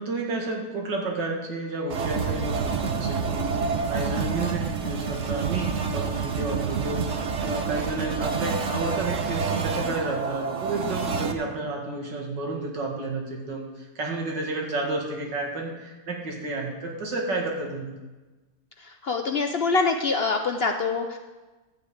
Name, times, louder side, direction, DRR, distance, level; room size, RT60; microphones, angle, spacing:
voice 1, 0.0-3.5 3.9-17.9, right 2 dB, 85° right, 0 dB, 2.7 m, -31 dB
sound 1, 1.9-11.3, right 5 dB, 55° right, 1.1 m, -28 dB
voice 2, 19.0-21.2, left 4 dB, 75° left, 5 dB, 0.5 m, -24 dB
12.5 x 5.6 x 8.4 m, 1.2 s
omnidirectional pair, 1.9 m